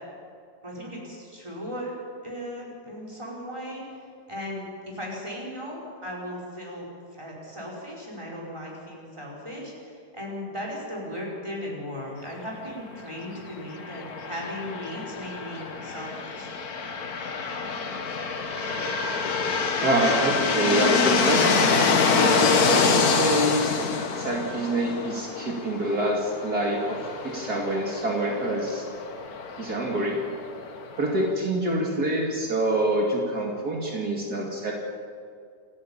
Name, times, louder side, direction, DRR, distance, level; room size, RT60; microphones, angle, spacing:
voice 1, 0.6-1.9 2.2-3.8 4.3-6.9 7.1-16.5, equal, 15° right, -3 dB, 5.4 m, -37 dB
sound 1, 13.7-31.3, left 5 dB, 60° left, 1.9 m, -26 dB
voice 2, 19.8-23.7 24.2-27.0 27.2-28.8 29.6-30.2 31.0-34.7, right 1 dB, 65° right, -1 dB, 3.0 m, -26 dB
28.0 x 11.5 x 8.8 m, 2.2 s
omnidirectional pair, 1.8 m